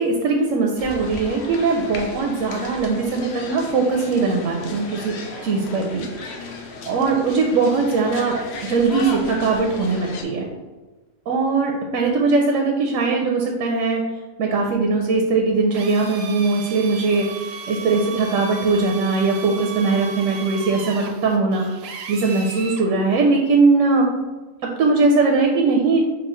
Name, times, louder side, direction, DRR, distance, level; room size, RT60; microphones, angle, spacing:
voice 1, 0.0-5.1 5.4-6.1 6.9-10.4 11.3-14.0 14.4-17.3 17.7-21.7 22.1-24.1 24.6-26.0, right 3 dB, 90° right, 0 dB, 1.0 m, -20 dB
sound 1, 0.8-10.2, left 3 dB, 60° left, 0.8 m, -36 dB
Drill, 15.7-22.9, right 6 dB, 65° right, 0.7 m, -36 dB
5.5 x 2.3 x 3.7 m, 1.2 s
omnidirectional pair, 1.3 m